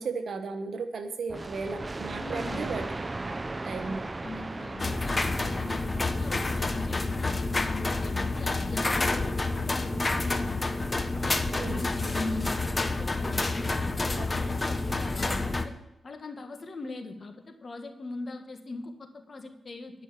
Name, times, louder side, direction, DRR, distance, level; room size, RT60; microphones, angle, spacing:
voice 1, 0.0-2.8 3.6-4.1 11.6-11.9 14.1-14.3, right 4 dB, 75° right, 8 dB, 1.2 m, -35 dB
sound 1, 1.3-6.9, right 2 dB, 35° right, 0.5 m, -37 dB
voice 2, 2.2-2.7 3.7-10.9 11.2-15.7 16.0-20.0, left 3 dB, 55° left, 6 dB, 1.7 m, -40 dB
sound 2, 4.8-15.6, left 2 dB, 35° left, 1.1 m, -29 dB
11.5 x 6.2 x 7.3 m, 0.92 s
supercardioid pair, 45°, 0 cm